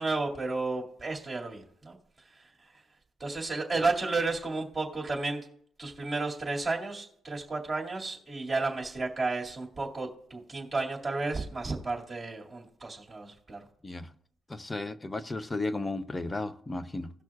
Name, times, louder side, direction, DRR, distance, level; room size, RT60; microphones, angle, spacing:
voice 1, 0.0-2.0 3.2-5.4 5.8-13.6, right 3 dB, 20° right, -1 dB, 2.2 m, -32 dB
voice 2, 14.5-17.1, left 2 dB, 20° left, 13 dB, 0.6 m, -34 dB
17.5 x 6.0 x 2.4 m, 0.65 s
cardioid pair, 90°, 0 cm